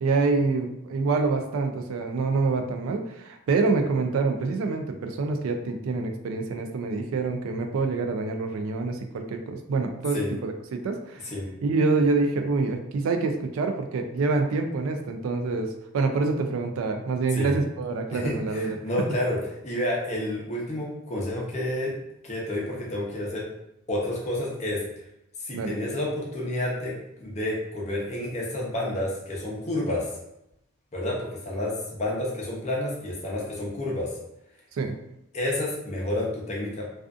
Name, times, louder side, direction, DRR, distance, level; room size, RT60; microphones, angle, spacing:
voice 1, 0.0-11.3 11.6-18.8 25.5-25.7 34.8-35.0, right 3 dB, 85° right, 5 dB, 0.3 m, -26 dB
voice 2, 18.1-19.4 19.6-21.9 22.2-23.5 23.9-24.8 25.5-30.1 30.9-34.2 35.3-36.9, left 1 dB, 35° left, -4 dB, 0.6 m, -30 dB
2.4 x 2.3 x 2.4 m, 0.84 s
head